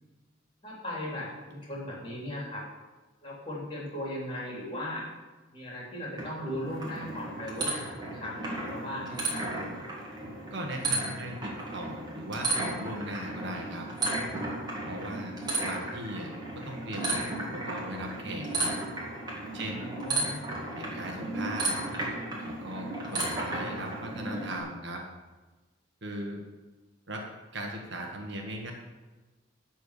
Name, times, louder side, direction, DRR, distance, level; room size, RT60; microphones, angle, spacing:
voice 1, 0.6-2.7 3.2-5.1 5.5-9.5 19.6-20.4, left 1 dB, 25° left, -5 dB, 3.5 m, -38 dB
sound 1, 6.2-24.6, right 2 dB, 20° right, 2.3 m, -34 dB
voice 2, 10.5-13.9 14.9-15.3 15.6-16.3 16.6-17.2 17.5-18.7 19.5-19.8 20.7-21.8 22.5-25.0 26.0-26.4 27.1-27.2 27.5-28.7, right 1 dB, 55° right, 1 dB, 1.5 m, -38 dB
12.0 x 4.5 x 8.4 m, 1.2 s
head